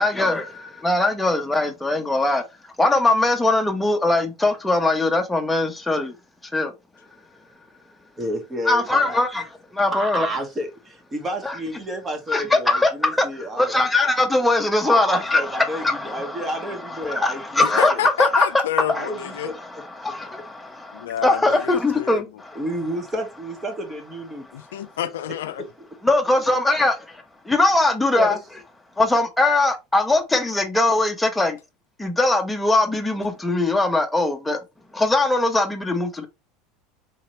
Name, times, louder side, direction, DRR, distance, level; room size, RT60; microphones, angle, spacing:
voice 1, 0.0-2.4 2.8-6.1 6.5-6.7 8.7-9.5 9.7-10.3 11.4-11.5 12.3-16.5 17.0-17.9 18.2-18.6 18.9-19.1 20.0-22.6 26.0-28.4 29.0-31.6 32.0-34.6 34.9-36.3, left 2 dB, 10° left, 0.9 m, -21 dB
voice 2, 8.2-9.2 9.9-13.8 14.8-18.0 18.9-19.8 22.5-24.4 28.1-28.4, right 1 dB, 25° right, 1.4 m, -31 dB
voice 3, 17.6-19.5 20.9-22.2 24.5-25.7, left 11 dB, 85° left, 0.4 m, -28 dB
4.0 x 2.8 x 3.0 m
hypercardioid pair, 95°, 0 cm